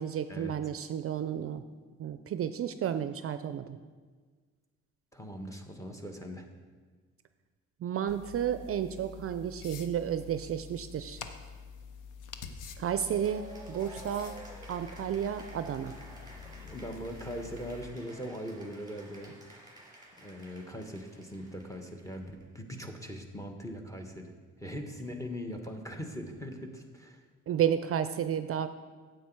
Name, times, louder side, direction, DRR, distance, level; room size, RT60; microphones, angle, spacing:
voice 1, 0.0-1.6 2.0-3.8 7.8-11.2 12.8-14.3 14.7-15.9 27.5-28.7, right 9 dB, 50° right, 11 dB, 0.5 m, -32 dB
voice 2, 5.1-6.5 16.6-19.3 20.2-24.3 24.6-27.2, equal, 10° left, 4 dB, 1.2 m, -41 dB
sound 1, 8.1-17.8, left 6 dB, 90° left, 0.8 m, -47 dB
Cheering / Applause, 12.9-22.4, right 1 dB, 15° right, 3.2 m, -52 dB
9.3 x 7.9 x 4.6 m, 1.5 s
cardioid pair, 90°, 30 cm